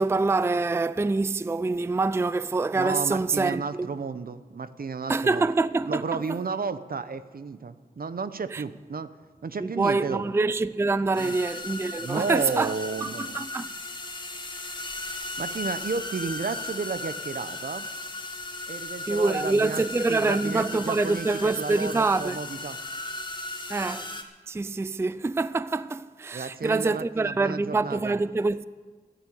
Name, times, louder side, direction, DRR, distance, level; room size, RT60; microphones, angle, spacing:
voice 1, 0.0-3.9 5.1-6.2 8.5-8.6 9.6-12.7 13.2-13.7 19.1-22.4 23.7-24.1 24.5-28.7, right 3 dB, 15° right, 0.3 m, -25 dB
voice 2, 2.7-5.5 5.8-9.1 9.4-10.3 11.1-11.4 12.0-13.4 15.4-17.9 18.7-22.8 26.3-28.2, right 4 dB, 70° right, 0.8 m, -32 dB
sound 1, 11.2-24.2, left 2 dB, 30° left, 1.9 m, -36 dB
13.0 x 10.0 x 8.4 m
wide cardioid pair, 70°, 16 cm